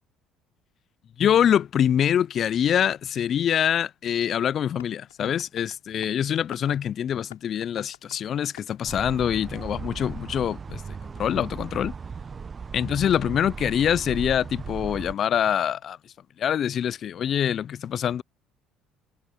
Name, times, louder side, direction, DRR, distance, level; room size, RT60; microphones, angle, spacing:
voice 1, 1.2-10.8 11.2-11.9 12.7-16.0 16.4-18.2, left 9 dB, 50° left, 0.4 m, -24 dB
Tap, 4.8-10.2, left 16 dB, 85° left, 4.1 m, -52 dB
sound 1, 8.8-15.1, right 5 dB, 35° right, 0.8 m, -37 dB
hypercardioid pair, 60°, 0 cm